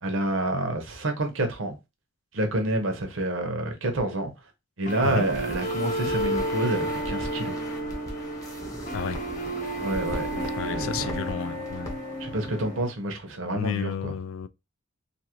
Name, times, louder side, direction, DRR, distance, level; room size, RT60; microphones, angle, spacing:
voice 1, 0.0-1.8 2.3-4.3 4.8-7.6 9.8-11.2 12.2-14.1, right 1 dB, 75° right, 0.8 m, -28 dB
sound 1, 4.9-12.9, right 1 dB, 40° left, 0.8 m, -31 dB
sound 2, 5.0-11.3 11.6-11.9 12.2-12.3, equal, 15° left, 0.9 m, -40 dB
voice 2, 10.6-12.0 13.5-14.5, left 8 dB, 80° left, 0.3 m, -32 dB
2.7 x 2.6 x 2.9 m
head